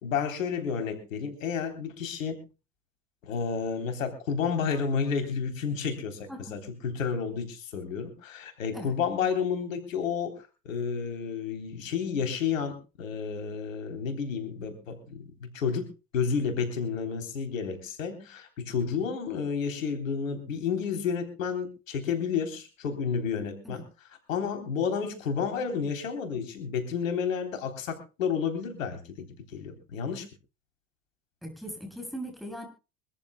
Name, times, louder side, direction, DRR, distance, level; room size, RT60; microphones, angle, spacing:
voice 1, 0.0-2.4 3.2-10.4 10.7-15.9 16.1-23.8 24.3-30.3, left 6 dB, 85° left, 6 dB, 3.6 m, -31 dB
voice 2, 31.4-32.7, equal, ahead, 3 dB, 7.5 m, -39 dB
24.5 x 14.0 x 2.2 m, 0.32 s
hypercardioid pair, 85°, 39 cm